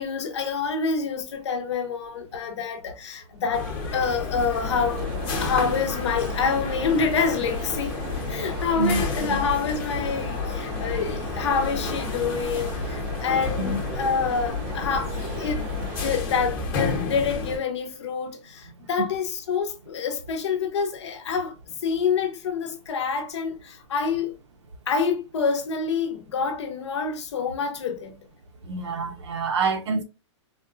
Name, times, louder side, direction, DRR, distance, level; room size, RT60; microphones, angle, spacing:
voice 1, 0.0-3.7 3.9-5.1 5.4-8.0 8.3-21.5 21.8-24.3 24.9-28.2, left 5 dB, 60° left, 0.9 m, -27 dB
sound 1, 3.5-17.6, left 4 dB, 25° left, 1.0 m, -31 dB
sound 2, 4.6-16.2, right 3 dB, 15° right, 0.3 m, -38 dB
voice 2, 8.8-9.4 13.6-13.8 18.7-19.1 28.6-30.0, right 4 dB, 60° right, 0.8 m, -27 dB
4.1 x 2.2 x 2.5 m
hypercardioid pair, 175°, 16 cm